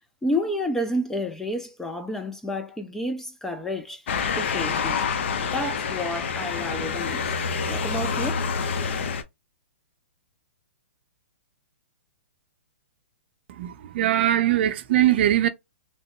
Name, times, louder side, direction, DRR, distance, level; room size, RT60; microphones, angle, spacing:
voice 1, 0.2-5.1 5.4-7.3 7.7-8.5, left 1 dB, 5° left, 0.3 m, -30 dB
Motor vehicle (road) / Siren, 4.1-9.2, left 5 dB, 60° left, 0.6 m, -27 dB
voice 2, 13.5-15.5, right 12 dB, 55° right, 0.6 m, -21 dB
3.0 x 2.0 x 2.9 m
hypercardioid pair, 135°, 7 cm